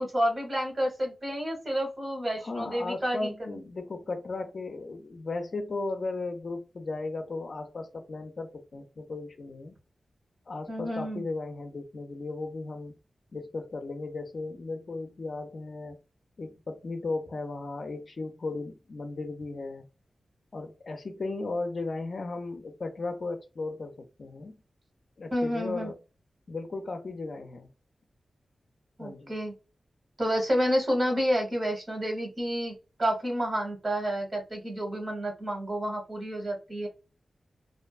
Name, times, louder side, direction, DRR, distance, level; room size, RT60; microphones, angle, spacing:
voice 1, 0.0-3.6 10.7-11.2 25.3-25.9 29.0-29.5 30.2-32.7 33.0-36.9, equal, 40° right, 1.2 m, -29 dB
voice 2, 2.4-9.7 10.5-13.0 13.3-16.0 16.4-19.9 20.5-24.5 25.2-26.0 26.5-27.7 29.0-29.3, left 3 dB, 60° left, 0.5 m, -36 dB
2.5 x 2.2 x 2.4 m
cardioid pair, 70°, 0 cm